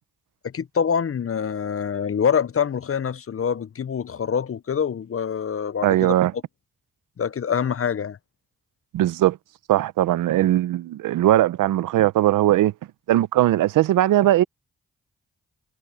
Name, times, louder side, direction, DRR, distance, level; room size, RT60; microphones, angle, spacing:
voice 1, 0.4-6.1 7.2-8.2, left 7 dB, 45° left, 0.8 m, -25 dB
voice 2, 5.8-6.3 8.9-9.4 9.7-12.7 13.1-14.4, right 14 dB, 85° right, 0.8 m, -19 dB
supercardioid pair, 40°, 31 cm